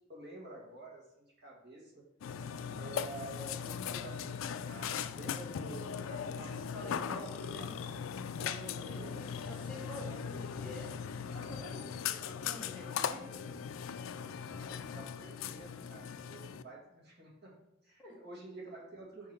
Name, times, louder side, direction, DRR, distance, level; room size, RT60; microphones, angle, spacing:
voice 1, 0.1-2.0 2.8-6.6 8.7-9.3 10.0-10.2 14.4-17.5 17.8-19.3, right 2 dB, 55° right, -3 dB, 1.9 m, -50 dB
Burping eructation, 2.2-16.6, left 7 dB, 80° left, 0.3 m, -39 dB
voice 2, 6.5-7.7 8.3-9.0 9.4-10.9 11.3-13.4 18.0-18.2, left 1 dB, 5° left, -5 dB, 1.4 m, -48 dB
5.1 x 3.8 x 5.3 m, 0.87 s
head